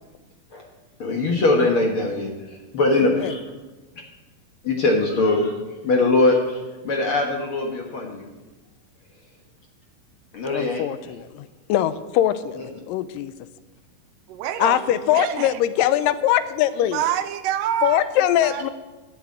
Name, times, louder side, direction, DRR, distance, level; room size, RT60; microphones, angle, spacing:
voice 1, 1.0-3.4 4.6-5.5 5.8-8.2 10.3-10.8, left 2 dB, 55° left, 1 dB, 1.5 m, -21 dB
voice 2, 10.5-13.3 14.6-17.0 17.8-18.7, left 12 dB, 85° left, 13 dB, 2.2 m, -22 dB
voice 3, 14.3-15.6 16.9-18.1 18.4-18.7, right 10 dB, 80° right, 10 dB, 2.2 m, -27 dB
11.5 x 7.0 x 8.5 m, 1.2 s
omnidirectional pair, 4.0 m